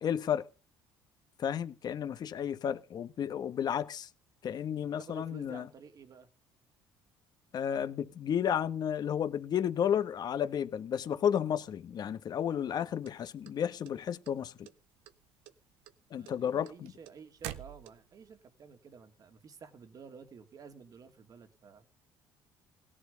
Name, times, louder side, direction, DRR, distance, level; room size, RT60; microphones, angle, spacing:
voice 1, 0.0-0.5 1.4-4.1 4.4-5.7 7.5-14.7 16.1-16.9, left 9 dB, 50° left, 1.3 m, -32 dB
voice 2, 4.8-6.3 16.1-21.8, right 6 dB, 45° right, 2.8 m, -52 dB
sound 1, 13.0-14.3 14.6-15.2 15.5-18.3, right 13 dB, 85° right, 1.3 m, -46 dB
17.5 x 11.0 x 5.2 m
cardioid pair, 105°, 9 cm